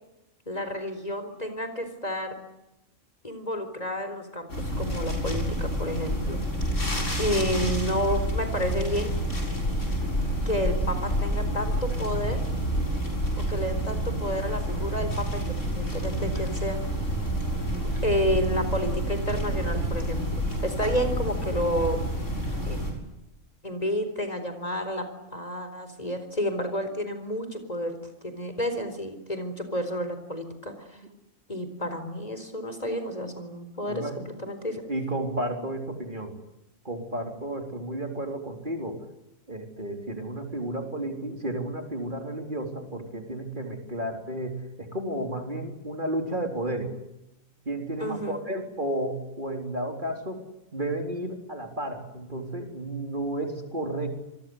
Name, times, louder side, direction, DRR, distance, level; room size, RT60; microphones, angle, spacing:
voice 1, 0.5-2.3 3.2-6.4 7.2-9.2 10.5-12.4 13.4-16.8 18.0-22.0 22.7-22.8 23.6-25.0 25.3-28.0 28.2-31.0 31.5-34.8 48.0-48.4, equal, 25° left, 8 dB, 4.3 m, -30 dB
sound 1, 4.5-22.9, right 1 dB, 60° left, 7.9 m, -28 dB
voice 2, 33.9-34.2 34.9-36.4 36.8-39.0 39.5-47.0 47.7-50.4 50.7-54.1, right 1 dB, 35° right, 4 dB, 4.2 m, -32 dB
28.0 x 22.5 x 8.1 m, 0.91 s
omnidirectional pair, 1.5 m